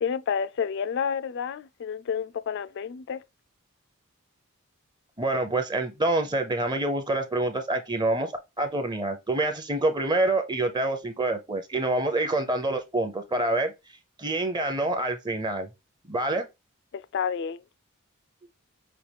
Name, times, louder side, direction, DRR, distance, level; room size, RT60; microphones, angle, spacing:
voice 1, 0.0-3.2 16.9-17.6, left 7 dB, 55° left, 0.3 m, -30 dB
voice 2, 5.2-8.3 8.6-13.7 14.2-15.7 16.1-16.5, right 2 dB, 20° right, 0.6 m, -26 dB
5.6 x 2.3 x 3.4 m
head